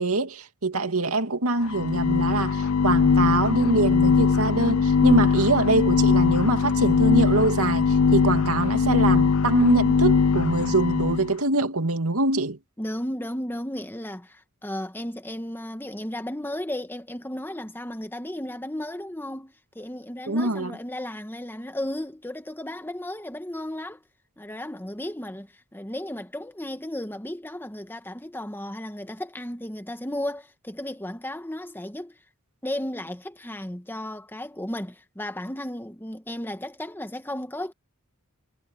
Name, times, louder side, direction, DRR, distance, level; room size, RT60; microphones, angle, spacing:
voice 1, 0.0-12.6 20.3-20.8, right 2 dB, 80° right, 2.4 m, -24 dB
sound 1, 1.6-11.3, left 5 dB, 75° left, 0.6 m, -21 dB
voice 2, 12.8-24.0 24.4-32.1 32.6-37.7, left 1 dB, 10° left, 1.5 m, -34 dB
head